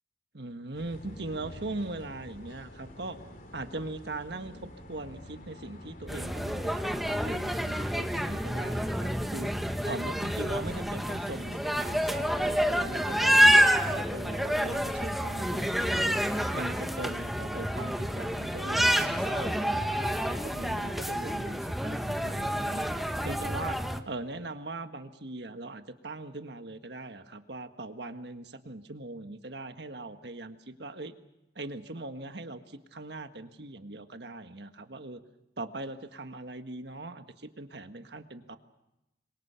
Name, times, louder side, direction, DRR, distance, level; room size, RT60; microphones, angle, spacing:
voice 1, 0.3-3.2 3.5-9.5 9.8-22.9 23.2-23.8 24.1-31.1 31.5-35.2 35.6-38.6, right 2 dB, 65° right, 8 dB, 1.5 m, -40 dB
sound 1, 0.7-16.8, left 1 dB, 50° left, 3.0 m, -49 dB
sound 2, 6.1-24.0, equal, ahead, 1.1 m, -28 dB
27.0 x 22.5 x 5.8 m, 0.91 s
head